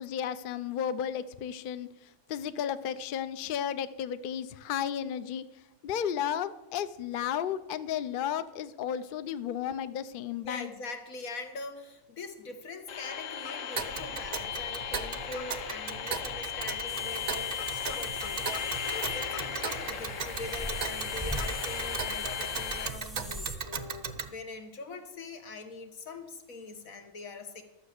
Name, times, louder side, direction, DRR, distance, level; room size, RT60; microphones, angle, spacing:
voice 1, 0.0-5.4 5.8-10.7, left 9 dB, 55° left, 13 dB, 0.6 m, -33 dB
voice 2, 10.4-27.6, left 3 dB, 90° left, 6 dB, 1.7 m, -43 dB
sound 1, 12.9-22.9, left 8 dB, 70° left, 1.2 m, -36 dB
Tick, 13.8-24.3, right 6 dB, 45° right, 0.5 m, -37 dB
sound 2, 16.9-23.6, equal, ahead, 0.7 m, -42 dB
12.5 x 7.2 x 6.5 m, 0.94 s
omnidirectional pair, 1.4 m